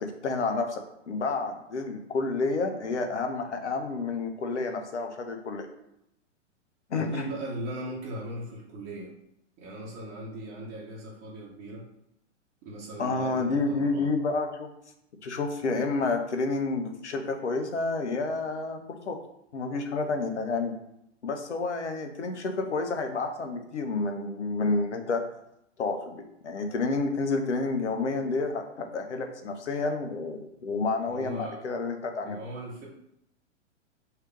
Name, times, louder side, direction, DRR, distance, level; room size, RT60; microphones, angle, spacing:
voice 1, 0.0-5.7 6.9-7.3 13.0-14.7 15.2-19.2 19.5-20.7 21.2-25.3 25.8-32.4, left 3 dB, 65° left, 5 dB, 0.8 m, -30 dB
voice 2, 6.9-9.1 9.6-11.8 12.6-14.1 31.1-31.6 32.3-32.8, right 1 dB, 30° right, -6 dB, 1.0 m, -38 dB
3.3 x 2.9 x 4.6 m, 0.79 s
figure-of-eight pair, 110°, 37 cm